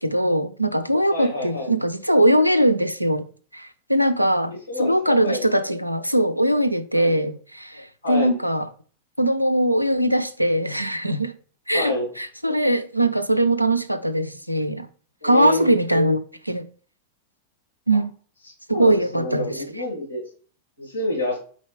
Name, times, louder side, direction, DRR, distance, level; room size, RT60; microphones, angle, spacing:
voice 1, 0.0-3.3 3.5-4.5 4.8-8.6 9.2-11.3 11.7-14.9 15.2-16.6 17.9-18.1 18.7-19.5, right 1 dB, 90° right, 0.4 m, -21 dB
voice 2, 1.1-1.7 4.5-5.5 6.9-7.2 8.0-8.3 11.7-12.1 15.2-15.8 18.7-20.2 20.8-21.4, left 1 dB, 85° left, 2.3 m, -28 dB
4.3 x 4.1 x 3.0 m
figure-of-eight pair, 90°, 0 cm